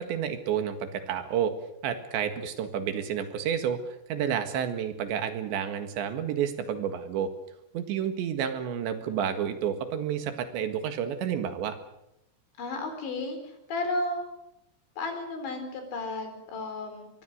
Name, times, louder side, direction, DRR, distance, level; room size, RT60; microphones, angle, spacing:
voice 1, 0.0-1.5 1.8-3.8 4.1-7.3 7.7-11.8, right 8 dB, 80° right, 8 dB, 4.0 m, -30 dB
voice 2, 12.6-14.2 15.0-17.1, left 2 dB, 85° left, 6 dB, 6.4 m, -33 dB
25.0 x 21.0 x 6.5 m, 0.84 s
omnidirectional pair, 5.1 m